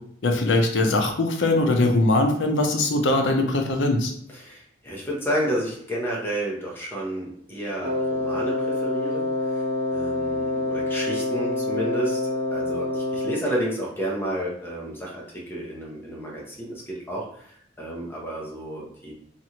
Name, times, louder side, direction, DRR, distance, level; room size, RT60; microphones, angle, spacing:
voice 1, 0.2-4.1, left 2 dB, 70° left, 3 dB, 0.5 m, -21 dB
voice 2, 4.3-9.6 9.9-19.1, right 1 dB, 10° left, -4 dB, 0.6 m, -31 dB
Wind instrument woodwind instrument, 7.8-13.5, left 2 dB, 55° right, 0.6 m, -26 dB
2.9 x 2.4 x 2.8 m, 0.65 s
head